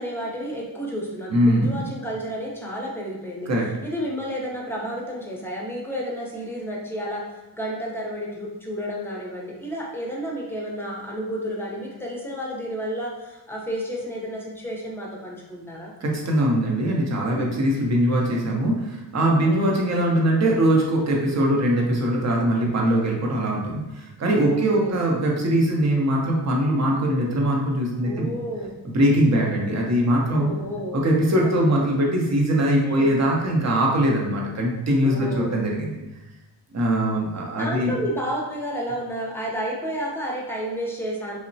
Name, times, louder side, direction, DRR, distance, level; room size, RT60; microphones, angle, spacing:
voice 1, 0.0-3.5 3.8-15.9 17.3-17.6 19.4-20.0 21.0-21.1 24.4-25.1 28.0-28.7 30.3-31.0 31.4-31.7 32.8-33.2 35.0-35.6 37.6-41.4, equal, 5° left, -3 dB, 0.6 m, -31 dB
voice 2, 1.3-1.8 3.5-3.7 16.0-28.3 28.8-30.5 30.9-36.0 36.7-37.9, right 1 dB, 40° right, -1 dB, 0.7 m, -21 dB
2.9 x 2.1 x 2.6 m, 1.0 s
cardioid pair, 80°, 42 cm